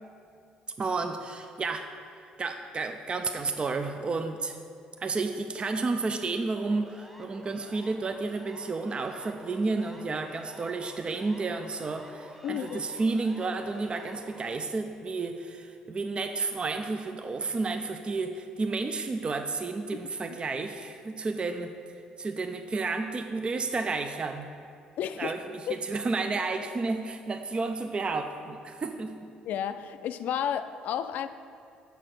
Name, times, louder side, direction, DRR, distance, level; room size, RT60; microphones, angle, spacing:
voice 1, 0.8-4.6 5.0-21.7 22.2-24.5 25.2-29.2, right 3 dB, 35° right, 6 dB, 0.5 m, -31 dB
Siren, 6.6-14.5, equal, ahead, 1.0 m, -49 dB
voice 2, 12.4-12.9 25.0-25.4 25.7-25.8 29.5-31.3, left 9 dB, 65° left, 12 dB, 0.3 m, -32 dB
6.6 x 4.1 x 6.4 m, 2.5 s
hypercardioid pair, 60°, 3 cm